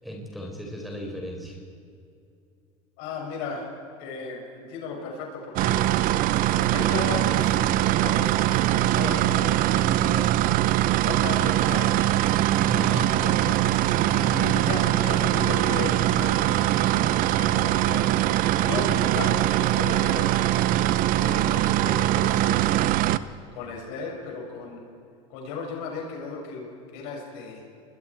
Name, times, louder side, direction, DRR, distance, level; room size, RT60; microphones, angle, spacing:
voice 1, 0.0-1.6 12.7-13.1 13.8-14.3, equal, ahead, -1 dB, 4.6 m, -36 dB
voice 2, 3.0-3.6 4.0-5.9 6.5-7.5 8.0-10.4 11.0-11.9 12.8-13.6 14.3-18.1 18.6-20.3 21.1-22.8 23.5-24.8 25.3-27.6, left 4 dB, 70° left, -1 dB, 6.8 m, -35 dB
sound 1, 5.6-23.2, right 14 dB, 55° right, 0.8 m, -22 dB
28.5 x 21.0 x 4.7 m, 2.5 s
supercardioid pair, 100°, 17 cm